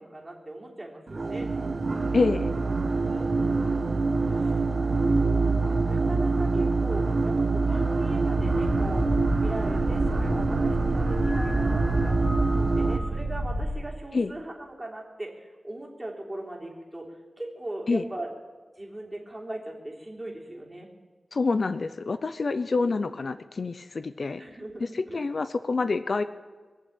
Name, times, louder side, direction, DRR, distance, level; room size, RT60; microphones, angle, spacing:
voice 1, 0.0-1.5 3.0-4.0 4.3-12.2 12.5-18.3 18.8-20.9 22.8-23.2 24.4-25.3, right 1 dB, 15° right, -1 dB, 3.5 m, -39 dB
sound 1, 1.1-13.0, right 3 dB, 45° right, 1.4 m, -25 dB
voice 2, 2.1-2.5 14.1-14.3 17.9-18.0 21.3-24.4 24.8-26.2, left 4 dB, 60° left, 12 dB, 0.6 m, -27 dB
sound 2, 8.4-13.7, equal, 20° left, 2.9 m, -30 dB
22.5 x 7.5 x 8.7 m, 1.4 s
wide cardioid pair, 90°, 0 cm